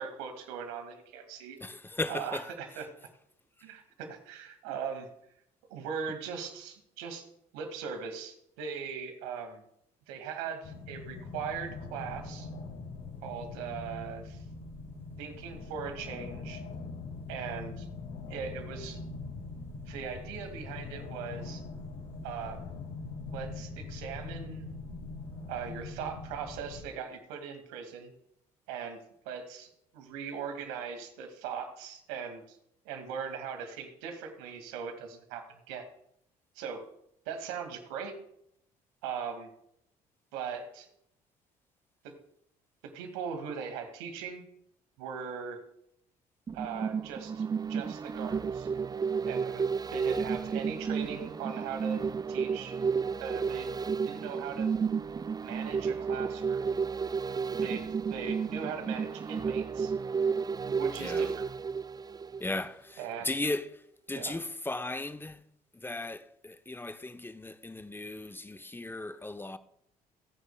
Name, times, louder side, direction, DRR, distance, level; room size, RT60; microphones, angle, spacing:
voice 1, 0.0-1.6 2.1-2.9 3.6-5.1 5.7-7.2 7.5-9.6 10.1-12.5 13.2-14.4 15.2-16.6 17.3-17.9 18.3-19.0 19.8-21.6 22.2-22.6 23.3-24.7 25.5-28.1 28.7-29.0 29.2-32.6 32.8-35.8 36.5-36.8 37.3-38.1 39.0-39.5 40.3-40.9 42.0-42.1 42.9-44.4 45.0-45.6 46.5-47.4 47.7-48.7 49.3-52.0 52.3-52.8 53.2-53.7 54.0-54.7 55.4-56.8 57.5-59.9 60.6-61.4 63.0-63.3 64.1-64.4, right 6 dB, 75° right, 2.2 m, -39 dB
voice 2, 1.6-2.5 61.0-61.3 62.4-65.4 65.7-69.6, left 2 dB, 10° left, 0.9 m, -36 dB
sound 1, 10.6-26.8, left 3 dB, 60° left, 3.6 m, -42 dB
sound 2, 46.5-62.7 63.1-63.2, right 6 dB, 20° right, 0.4 m, -32 dB
27.5 x 9.6 x 2.3 m
hypercardioid pair, 50°, 19 cm